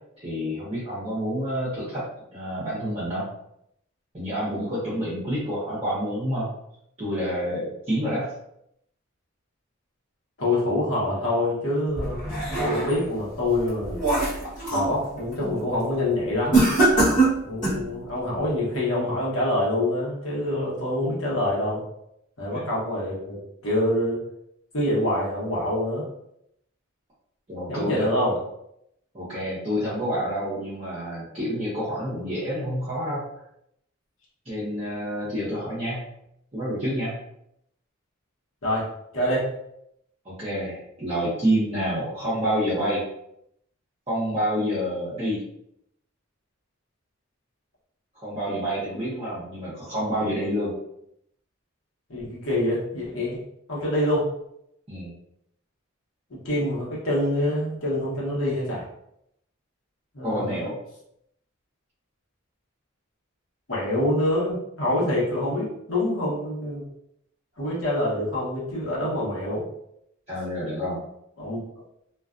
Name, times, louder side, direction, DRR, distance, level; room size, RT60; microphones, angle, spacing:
voice 1, 0.2-2.1 2.3-3.3 4.1-6.5 7.0-8.3 22.5-22.6 27.5-28.3 29.1-33.2 34.4-36.1 36.5-37.2 40.2-43.0 44.1-45.4 48.1-50.7 54.9-55.1 60.2-60.8 70.3-71.0, equal, 30° right, -11 dB, 0.7 m, -28 dB
voice 2, 10.4-12.2 12.7-14.0 14.7-16.7 17.4-21.8 22.4-24.2 24.7-26.0 27.7-28.3 38.6-38.9 39.1-39.5 48.9-49.0 52.1-53.4 53.7-54.3 56.3-58.8 60.1-60.6 63.7-66.8 67.6-69.6 71.4-71.6, left 1 dB, 70° left, -5 dB, 1.0 m, -26 dB
sound 1, 12.0-13.1 13.6-14.9 15.3-15.6 16.5-17.9, right 2 dB, 35° left, 1.2 m, -22 dB
2.4 x 2.2 x 2.4 m, 0.77 s
head